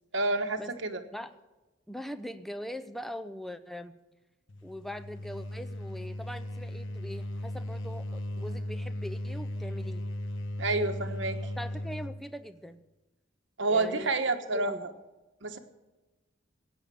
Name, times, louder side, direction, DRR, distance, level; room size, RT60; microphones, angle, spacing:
voice 1, 0.1-1.0 10.6-11.4 13.6-14.9 15.4-15.6, right 2 dB, 65° right, 6 dB, 1.2 m, -29 dB
voice 2, 1.9-4.0 4.6-10.0 11.6-12.8 13.7-14.1 14.5-14.8, equal, ahead, 10 dB, 0.6 m, -41 dB
sound 1, 4.5-12.2, left 1 dB, 75° left, 1.2 m, -37 dB
16.5 x 8.7 x 6.9 m, 1.1 s
head